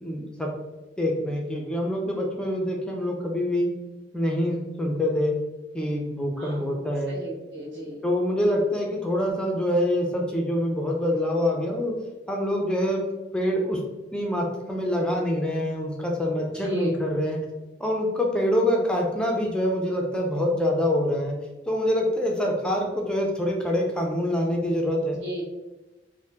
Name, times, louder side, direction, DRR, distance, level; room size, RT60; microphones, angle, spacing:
voice 1, 0.0-0.5 1.0-3.7 4.1-5.3 5.7-7.2 8.0-11.9 12.3-13.0 13.3-13.8 14.1-17.4 17.8-21.4 21.7-25.2, left 1 dB, 5° left, -1 dB, 0.3 m, -25 dB
voice 2, 6.4-6.7 7.1-8.0 16.4-16.9 25.2-25.4, right 1 dB, 80° right, -6 dB, 1.2 m, -33 dB
2.8 x 2.0 x 3.3 m, 1.1 s
head